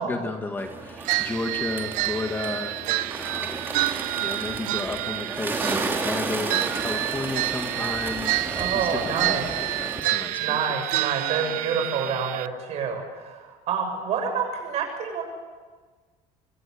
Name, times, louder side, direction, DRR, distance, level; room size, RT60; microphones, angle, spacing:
voice 1, 0.0-3.7 4.2-8.9 9.2-9.4 9.8-10.6, left 2 dB, 15° left, 4 dB, 1.8 m, -33 dB
Bird, 0.6-10.0, right 3 dB, 15° right, 2.9 m, -33 dB
sound 1, 1.0-12.5, right 17 dB, 85° right, 0.8 m, -29 dB
voice 2, 8.6-9.7 10.4-15.2, right 6 dB, 50° right, 4 dB, 7.2 m, -28 dB
25.0 x 24.0 x 8.6 m, 1.4 s
cardioid pair, 160°, 14 cm